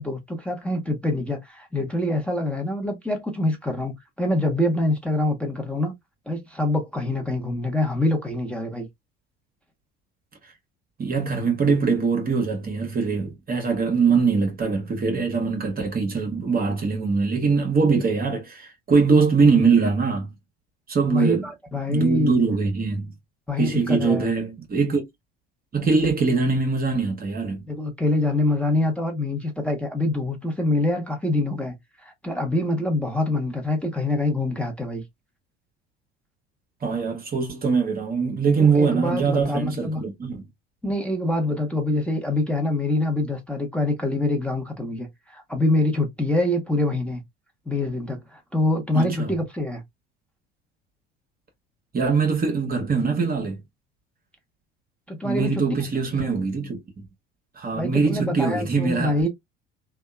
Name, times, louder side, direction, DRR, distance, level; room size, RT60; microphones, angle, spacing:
voice 1, 0.0-5.9 6.3-8.9 21.1-22.4 23.5-24.3 27.7-31.8 32.0-35.0 38.6-40.0 40.8-47.2 47.7-49.8 55.1-55.6 56.1-56.3 57.7-59.3, left 1 dB, 5° left, 0.9 m, -25 dB
voice 2, 11.0-20.3 20.9-21.4 21.9-23.1 23.6-25.0 25.7-27.6 36.8-40.5 48.9-49.3 51.9-53.6 55.2-57.1 57.6-59.2, right 4 dB, 30° right, 0.9 m, -22 dB
2.8 x 2.3 x 2.2 m
hypercardioid pair, 65°, 31 cm